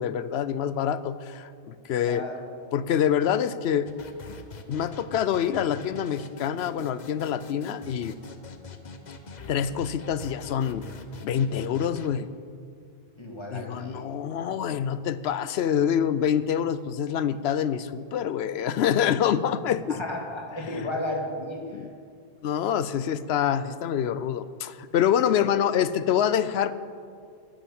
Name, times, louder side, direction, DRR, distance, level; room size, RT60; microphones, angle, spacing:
voice 1, 0.0-2.3 2.7-3.9 4.7-8.1 9.5-10.9 11.2-12.3 13.5-20.0 21.7-21.9 22.4-26.7, left 9 dB, 80° left, 14 dB, 0.9 m, -26 dB
voice 2, 2.0-2.4 13.2-14.0 19.9-21.8 25.3-25.4, left 1 dB, 25° left, 0 dB, 2.0 m, -33 dB
sound 1, 3.9-12.1, left 4 dB, 45° left, 0.9 m, -43 dB
10.5 x 10.5 x 8.5 m, 2.3 s
omnidirectional pair, 1.0 m